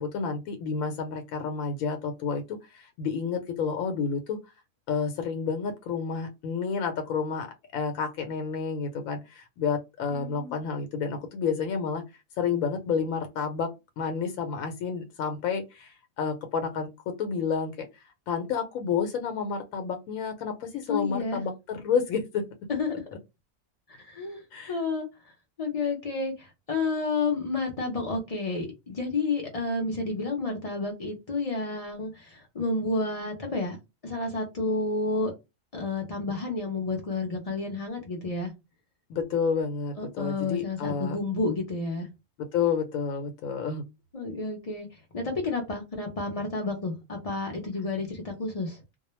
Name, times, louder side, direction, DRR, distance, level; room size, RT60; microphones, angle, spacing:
voice 1, 0.0-4.4 4.9-7.5 7.7-12.0 12.4-13.7 14.0-17.9 18.3-22.4 24.5-24.8 39.1-41.2 42.5-43.8, left 6 dB, 90° left, 1.0 m, -30 dB
voice 2, 10.1-10.5 20.9-21.4 22.7-22.9 24.0-25.1 25.6-33.8 34.0-35.3 35.7-38.5 40.0-42.1 44.1-44.9 45.1-48.8, left 3 dB, 45° left, 0.4 m, -30 dB
2.3 x 2.1 x 3.0 m
omnidirectional pair, 1.4 m